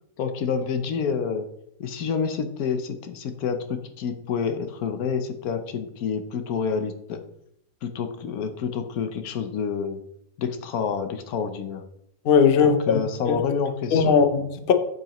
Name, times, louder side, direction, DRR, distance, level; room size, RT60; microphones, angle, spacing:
voice 1, 0.2-1.5 1.8-7.2 7.8-10.0 10.4-11.8 12.6-14.1, left 6 dB, 80° left, 1.3 m, -28 dB
voice 2, 12.2-13.0 13.3-13.4 13.9-14.7, left 6 dB, 50° left, 0.8 m, -19 dB
7.9 x 7.2 x 3.0 m
omnidirectional pair, 1.6 m